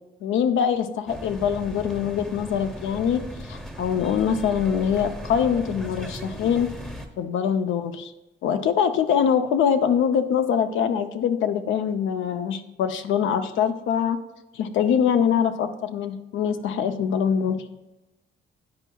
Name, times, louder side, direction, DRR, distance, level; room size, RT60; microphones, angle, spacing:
voice 1, 0.2-6.7 7.2-8.1 8.4-14.2 14.5-17.7, left 8 dB, 80° left, 9 dB, 0.5 m, -23 dB
sound 1, 1.1-7.1, equal, 5° left, 0.7 m, -37 dB
9.6 x 4.5 x 2.3 m, 1.0 s
cardioid pair, 90°, 20 cm